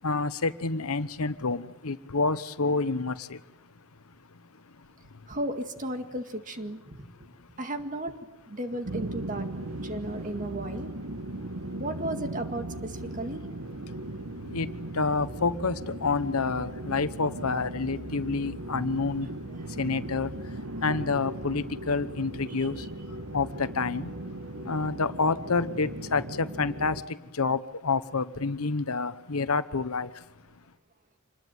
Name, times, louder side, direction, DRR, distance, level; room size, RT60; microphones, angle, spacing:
voice 1, 0.0-3.5 4.3-5.3 7.0-7.1 7.4-7.5 13.9-14.1 14.4-19.4 19.7-24.1 24.6-30.6, left 4 dB, 85° left, 1.0 m, -29 dB
voice 2, 5.3-7.0 7.6-9.5 9.8-10.9 11.8-13.5, right 1 dB, 40° right, 2.0 m, -34 dB
sound 1, 8.8-27.0, right 1 dB, 70° right, 1.6 m, -38 dB
26.5 x 20.5 x 9.2 m
head